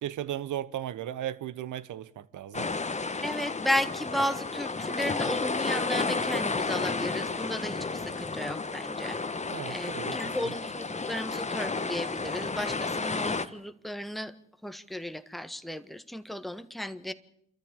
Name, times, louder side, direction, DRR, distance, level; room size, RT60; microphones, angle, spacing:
voice 1, 0.0-2.7 9.4-10.5, right 11 dB, 55° right, 1.2 m, -36 dB
sound 1, 2.5-13.5, left 3 dB, 20° left, 1.4 m, -32 dB
voice 2, 3.2-9.2 9.7-14.3 14.6-17.1, left 1 dB, ahead, 1.4 m, -34 dB
28.0 x 13.5 x 8.3 m
hypercardioid pair, 50°, 37 cm